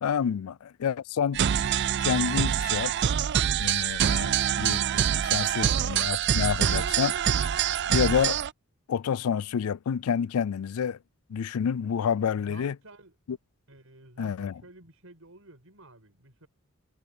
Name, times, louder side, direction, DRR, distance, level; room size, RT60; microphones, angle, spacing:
voice 1, 0.0-1.4 2.0-2.9 3.6-7.3 7.9-8.4 8.9-11.0 11.3-12.7 13.3-13.4 14.2-14.5, left 7 dB, 80° left, 0.4 m, -28 dB
sound 1, 1.3-8.5, right 9 dB, 50° right, 0.4 m, -25 dB
voice 2, 12.3-13.1 13.7-16.5, right 2 dB, 70° right, 7.3 m, -51 dB
head